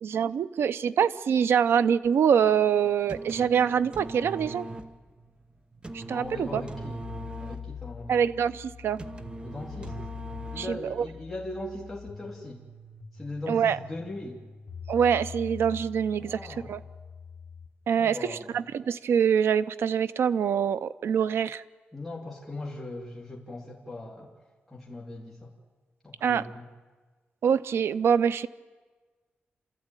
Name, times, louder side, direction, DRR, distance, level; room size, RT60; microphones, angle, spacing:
voice 1, 0.0-4.7 5.9-6.6 8.1-9.0 10.6-11.1 13.5-13.8 14.9-16.4 16.7-16.8 17.9-21.6 26.2-26.4 27.4-28.5, right 7 dB, 90° right, 14 dB, 0.7 m, -25 dB
sound 1, 2.9-11.1, right 2 dB, 25° right, 1.1 m, -41 dB
voice 2, 6.1-7.0 7.4-8.3 9.4-10.0 10.5-12.6 13.1-14.4 16.2-16.7 17.9-18.4 21.9-24.3 24.7-25.5 26.0-26.7, left 2 dB, 5° left, -4 dB, 2.7 m, -39 dB
sound 2, 6.2-17.7, left 7 dB, 50° left, 1.5 m, -44 dB
28.5 x 13.5 x 9.0 m, 1.4 s
wide cardioid pair, 150°, 4 cm